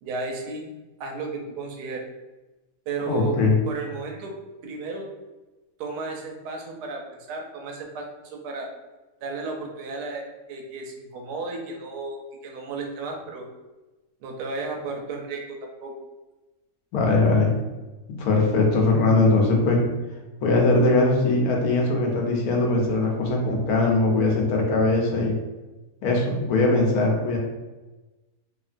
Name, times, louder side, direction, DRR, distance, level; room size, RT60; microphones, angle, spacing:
voice 1, 0.0-0.7 1.0-2.1 2.9-3.4 3.7-4.3 4.6-5.1 5.8-7.0 7.3-8.7 9.2-13.5 14.2-15.9, right 3 dB, 85° right, 2 dB, 1.2 m, -33 dB
voice 2, 3.1-3.6 16.9-17.5 18.1-19.8 20.4-25.4 26.0-27.4, left 2 dB, 70° left, 0 dB, 1.1 m, -21 dB
2.9 x 2.5 x 2.4 m, 1.1 s
omnidirectional pair, 1.7 m